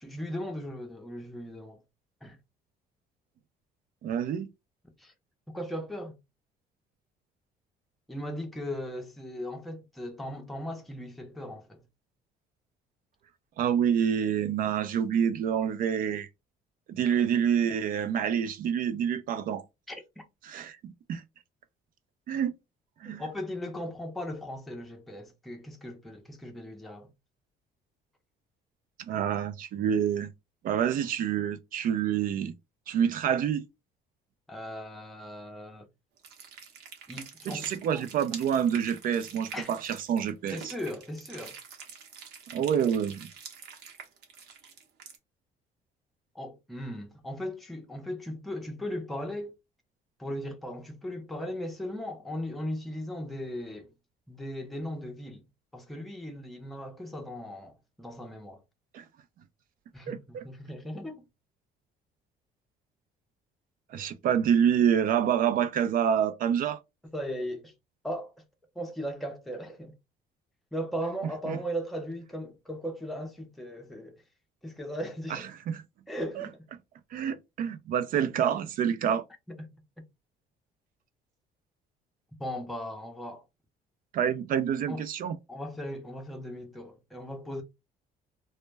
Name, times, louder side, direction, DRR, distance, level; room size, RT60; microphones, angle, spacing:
voice 1, 0.0-1.8 2.2-2.4 5.0-5.1 5.5-6.2 8.1-11.8 17.2-17.3 19.9-20.3 23.0-27.1 34.5-35.9 37.1-37.7 37.9-38.1 39.5-39.7 40.5-41.6 46.3-49.5 50.2-53.9 54.3-55.4 55.7-58.6 59.9-61.2 67.1-67.7 68.0-68.4 68.7-69.9 70.7-74.2 74.6-75.5 76.1-76.7 79.5-80.1 82.4-83.4 84.9-85.0 85.5-87.6, equal, ahead, 0.6 m, -37 dB
voice 2, 4.0-4.5 13.6-16.3 16.9-19.6 20.4-21.2 22.3-22.5 23.0-23.2 29.1-30.3 30.6-32.5 32.9-33.6 37.5-40.7 42.5-43.3 58.9-59.0 60.1-60.4 63.9-66.8 71.5-71.6 75.3-75.4 75.7-75.8 76.4-76.5 77.1-79.2 84.1-85.4, right 8 dB, 55° right, 0.4 m, -27 dB
sound 1, 36.2-45.2, right 6 dB, 85° right, 0.8 m, -46 dB
2.1 x 2.1 x 3.3 m
cardioid pair, 110°, 17 cm